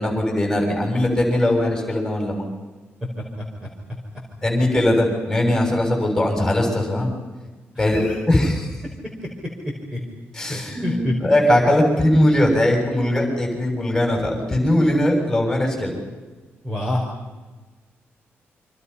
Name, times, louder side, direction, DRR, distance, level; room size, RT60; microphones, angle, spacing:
voice 1, 0.0-2.5 4.4-7.1 7.8-8.7 10.3-15.9, left 1 dB, 10° left, 1 dB, 7.1 m, -20 dB
voice 2, 3.2-3.7 7.7-8.2 9.9-10.0 10.5-11.1 16.6-17.0, left 1 dB, 15° right, -1 dB, 4.7 m, -27 dB
29.5 x 26.0 x 5.7 m, 1.3 s
wide cardioid pair, 175°, 4 cm